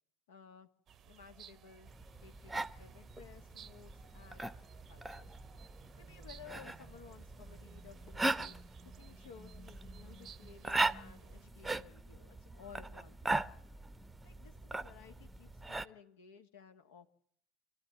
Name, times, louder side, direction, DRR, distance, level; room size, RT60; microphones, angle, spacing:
voice 1, 0.3-0.7 1.0-1.9 2.2-4.5 4.9-5.3 6.0-8.6 8.8-13.4 14.2-17.1, left 7 dB, 70° left, 6 dB, 2.1 m, -57 dB
sound 1, 0.9-11.5, right 8 dB, 35° right, 0.8 m, -58 dB
sound 2, 1.9-15.9, right 2 dB, 10° right, 0.9 m, -40 dB
27.5 x 13.0 x 9.6 m, 0.67 s
figure-of-eight pair, 75°, 0 cm